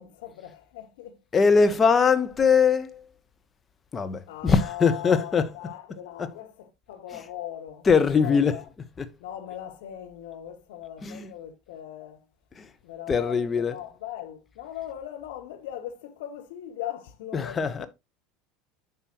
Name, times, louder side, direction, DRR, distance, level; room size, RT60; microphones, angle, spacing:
voice 1, 0.0-1.2 4.3-7.9 8.2-8.6 9.2-12.3 12.8-17.9, left 11 dB, 60° left, 1.3 m, -39 dB
voice 2, 1.3-3.1 3.9-5.5 6.2-6.3 7.8-8.6 9.0-9.1 11.0-11.3 12.6-12.7 13.1-13.8 17.3-17.9, left 5 dB, 25° left, 1.0 m, -22 dB
10.0 x 5.6 x 3.0 m
figure-of-eight pair, 75°, 0 cm